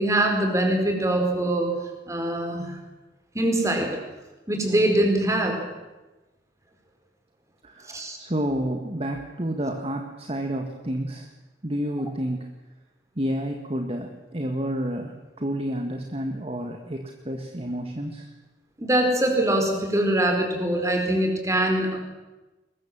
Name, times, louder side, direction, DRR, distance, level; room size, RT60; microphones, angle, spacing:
voice 1, 0.0-1.7 2.1-2.8 3.3-4.0 4.5-5.6 7.9-8.2 18.8-22.0, right 1 dB, 20° right, 3 dB, 4.7 m, -23 dB
voice 2, 7.6-11.3 11.6-12.5 13.2-18.3, equal, 35° right, 4 dB, 1.7 m, -30 dB
22.5 x 20.5 x 7.5 m, 1.1 s
head